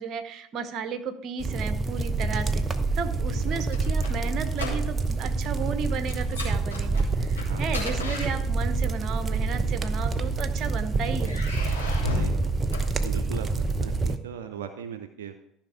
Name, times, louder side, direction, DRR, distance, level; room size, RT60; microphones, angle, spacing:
voice 1, 0.0-2.6 3.0-11.4, right 6 dB, 45° right, 10 dB, 1.0 m, -34 dB
sound 1, 1.4-14.2, right 3 dB, 25° right, 0.9 m, -27 dB
voice 2, 3.3-3.6 7.5-7.7 12.2-12.5 13.0-15.3, right 8 dB, 70° right, 7 dB, 0.6 m, -38 dB
sound 2, 3.5-5.2 5.4-5.7 6.1-8.9 9.8-10.6 11.2-13.5, left 4 dB, 80° left, 3.0 m, -35 dB
13.5 x 5.8 x 4.8 m, 0.76 s
figure-of-eight pair, 65°, 0 cm